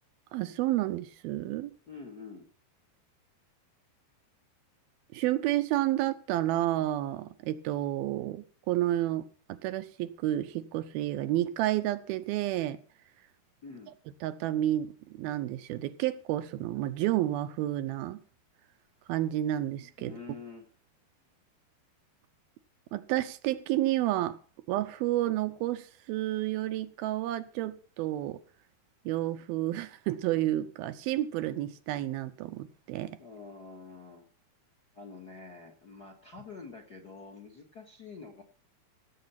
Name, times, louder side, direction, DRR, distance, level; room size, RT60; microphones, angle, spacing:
voice 1, 0.3-1.7 5.1-12.8 14.2-18.2 19.1-20.1 22.9-24.4 24.7-28.4 29.1-33.1, right 14 dB, 80° right, 2.5 m, -30 dB
voice 2, 1.9-2.5 13.6-14.0 20.0-20.7 33.2-34.3 34.9-38.4, left 4 dB, 45° left, 1.3 m, -47 dB
17.0 x 7.7 x 5.8 m
omnidirectional pair, 4.5 m